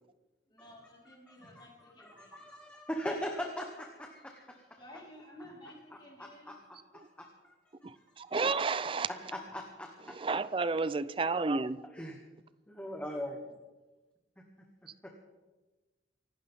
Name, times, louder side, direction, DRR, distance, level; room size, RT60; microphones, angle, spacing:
voice 1, 0.5-2.4 4.8-6.6, left 1 dB, 25° left, -4 dB, 4.4 m, -53 dB
voice 2, 1.3-1.6 2.0-4.8 6.2-6.6 6.9-7.5 8.3-8.4 8.8-10.2 11.9-12.2 12.7-13.4 14.4-14.5 15.0-15.1, equal, 10° left, 1 dB, 1.3 m, -40 dB
voice 3, 7.8-9.1 10.2-11.8, right 4 dB, 30° right, 15 dB, 0.5 m, -31 dB
25.0 x 12.0 x 3.7 m, 1.2 s
head